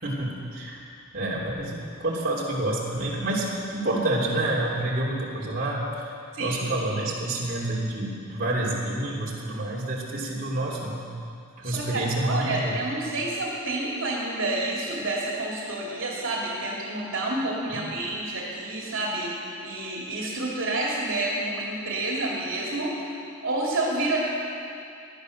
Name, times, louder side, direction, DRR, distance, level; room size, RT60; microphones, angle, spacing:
voice 1, 0.0-0.8 1.1-6.1 6.4-11.0 11.6-12.8 17.7-17.8, right 1 dB, 45° right, -5 dB, 3.1 m, -28 dB
voice 2, 6.3-6.6 7.0-7.1 11.6-22.9 23.4-24.2, right 2 dB, 70° right, -3 dB, 2.7 m, -29 dB
18.5 x 11.5 x 6.5 m, 2.5 s
head